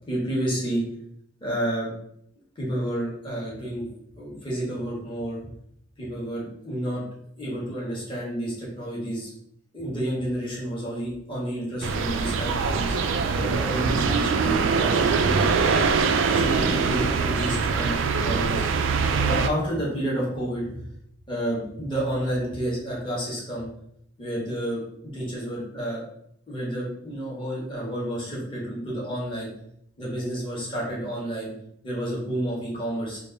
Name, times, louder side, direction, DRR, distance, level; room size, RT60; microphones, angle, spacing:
voice 1, 0.1-0.8 1.4-1.9 2.5-3.8 4.2-5.4 6.0-7.0 7.4-9.3 9.7-12.9 13.4-15.9 16.3-18.0 18.2-18.6 19.2-20.9 21.3-23.7 24.2-24.8 25.1-26.0 26.5-29.5 30.0-31.5 31.8-33.2, right 1 dB, 25° left, -5 dB, 1.3 m, -30 dB
sound 1, 11.8-19.5, right 5 dB, 85° right, 0.4 m, -23 dB
3.4 x 2.5 x 3.9 m, 0.72 s
head